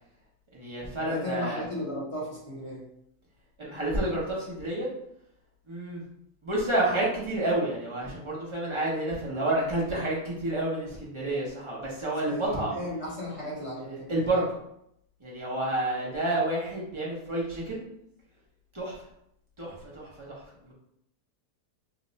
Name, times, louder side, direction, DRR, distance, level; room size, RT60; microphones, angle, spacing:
voice 1, 0.5-1.6 3.6-4.9 5.7-6.0 6.4-12.7 14.1-14.6 15.2-17.8 18.7-18.9 19.6-20.7, right 1 dB, 30° right, -5 dB, 0.5 m, -29 dB
voice 2, 1.1-2.8 12.2-14.3, left 1 dB, 50° left, -6 dB, 1.1 m, -35 dB
2.9 x 2.1 x 3.9 m, 0.76 s
omnidirectional pair, 1.7 m